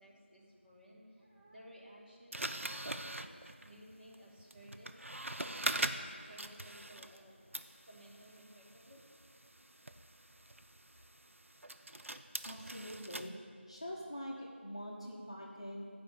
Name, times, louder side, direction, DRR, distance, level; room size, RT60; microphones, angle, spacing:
voice 1, 0.0-3.3 3.6-9.0 9.5-9.6 10.2-10.8, equal, 50° right, -6 dB, 2.6 m, -58 dB
sound 1, 2.3-7.3 7.5-13.3, right 1 dB, 90° right, 0.6 m, -42 dB
voice 2, 12.4-13.4 13.7-15.8, equal, 25° left, -3 dB, 0.8 m, -44 dB
12.0 x 5.1 x 6.6 m, 2.1 s
figure-of-eight pair, 180°, 7 cm